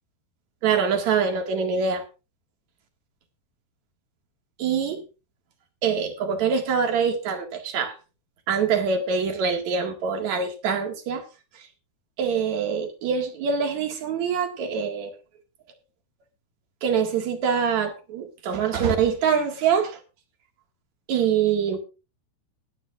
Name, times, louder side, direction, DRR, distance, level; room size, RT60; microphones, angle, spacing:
voice 1, 0.6-2.0 4.6-5.0 5.8-8.0 8.5-11.3 12.2-15.1 16.8-20.0 21.1-21.8, right 6 dB, 50° right, 2.8 m, -24 dB
20.0 x 9.7 x 2.5 m
omnidirectional pair, 4.6 m